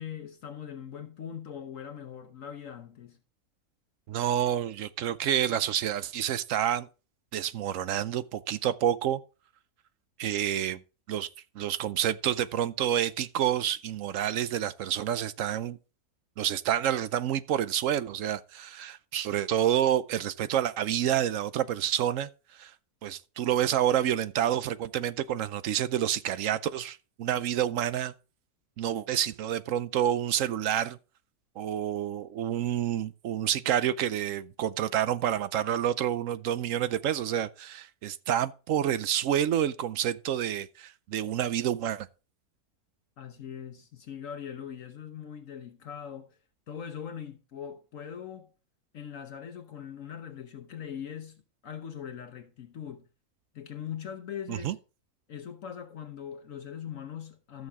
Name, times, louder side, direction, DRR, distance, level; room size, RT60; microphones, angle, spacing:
voice 1, 0.0-3.2 43.2-46.4 46.7-48.5 48.9-53.1 53.5-54.8 55.3-57.7, left 8 dB, 65° left, 1.2 m, -41 dB
voice 2, 4.1-6.9 7.3-9.2 10.2-10.8 11.1-11.3 11.6-15.8 16.4-22.7 23.0-28.1 28.8-31.0 31.6-42.1 54.5-54.8, right 10 dB, 65° right, 0.9 m, -28 dB
14.0 x 6.5 x 3.5 m
omnidirectional pair, 1.6 m